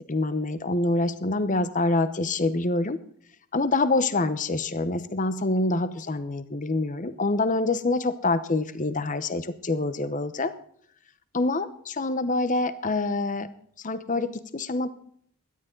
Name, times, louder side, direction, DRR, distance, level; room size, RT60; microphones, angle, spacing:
voice 1, 0.1-3.0 3.5-10.5 11.3-13.5 13.8-14.9, left 2 dB, 35° left, 12 dB, 0.9 m, -26 dB
16.5 x 12.5 x 3.9 m, 0.63 s
head